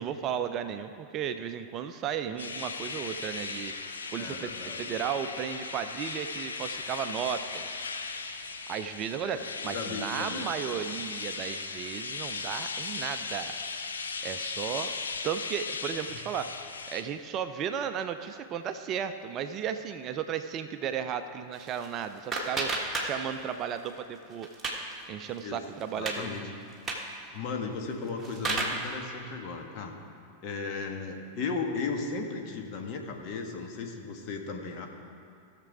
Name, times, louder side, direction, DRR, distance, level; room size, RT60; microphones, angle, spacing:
voice 1, 0.0-3.7 4.1-7.9 8.7-13.5 14.2-14.9 15.2-16.5 16.9-22.7 23.0-24.5 25.1-26.3, right 8 dB, 35° right, 9 dB, 0.5 m, -34 dB
sound 1, 2.4-17.0, left 4 dB, 70° left, 0.7 m, -37 dB
voice 2, 4.2-5.0 9.2-10.8 16.1-16.2 25.4-25.6 26.0-26.5 27.3-30.0 30.4-34.9, left 4 dB, 40° left, 2 dB, 1.4 m, -36 dB
sound 2, 21.5-23.6 23.9-24.9 25.3-25.4 25.8-26.2 26.7-27.1 27.9-28.9, right 2 dB, 15° right, 1.5 m, -33 dB
16.5 x 6.7 x 4.8 m, 2.5 s
figure-of-eight pair, 90°, 0 cm